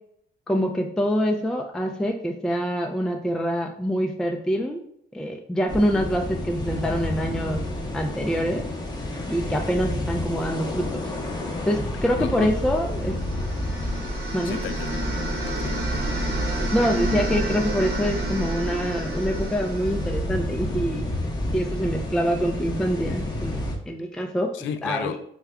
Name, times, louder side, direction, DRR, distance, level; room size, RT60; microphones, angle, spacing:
voice 1, 0.5-4.8 5.1-7.6 7.9-8.7 9.3-11.1 11.7-13.2 14.3-14.6 16.7-21.1 21.5-24.5 24.8-25.2, equal, 5° left, 0.3 m, -25 dB
sound 1, 5.7-23.8, left 1 dB, 20° left, 0.8 m, -30 dB
voice 2, 12.2-12.5 14.4-15.0 15.4-16.1 24.5-25.2, left 8 dB, 75° left, 0.4 m, -33 dB
sound 2, 12.7-20.7, right 1 dB, 55° right, 1.0 m, -30 dB
3.4 x 2.2 x 3.4 m
cardioid pair, 90°, 20 cm